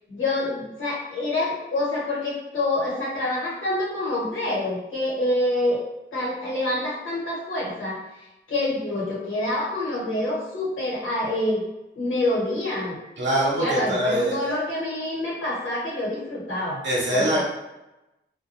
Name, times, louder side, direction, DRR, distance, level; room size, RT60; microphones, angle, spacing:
voice 1, 0.1-5.8 6.1-8.0 8.5-11.6 11.9-13.0 13.6-16.8 17.1-17.4, left 1 dB, 80° left, -6 dB, 0.9 m, -26 dB
voice 2, 13.2-14.3 16.8-17.4, right 1 dB, 65° right, -4 dB, 0.8 m, -23 dB
2.5 x 2.2 x 2.7 m, 0.97 s
cardioid pair, 65°, 21 cm